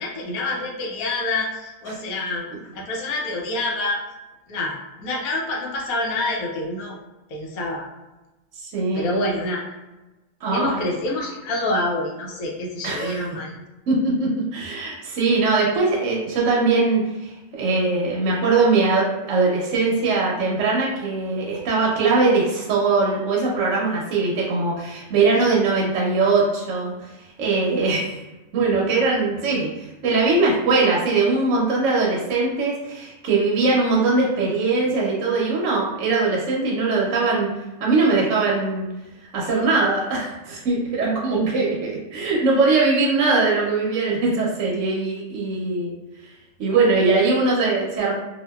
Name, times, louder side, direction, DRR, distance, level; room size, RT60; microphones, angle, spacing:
voice 1, 0.0-2.5 2.7-4.0 4.5-7.0 7.3-7.9 8.9-9.6 10.5-13.5, left 2 dB, 80° left, -2 dB, 1.1 m, -27 dB
voice 2, 8.6-9.2 10.4-10.8 12.8-13.3 13.9-26.9 27.4-28.2 28.5-29.7 30.0-37.5 37.8-38.8 39.3-45.9 46.6-48.1, right 3 dB, 65° right, -4 dB, 1.0 m, -21 dB
2.7 x 2.4 x 2.2 m, 1.1 s
omnidirectional pair, 1.5 m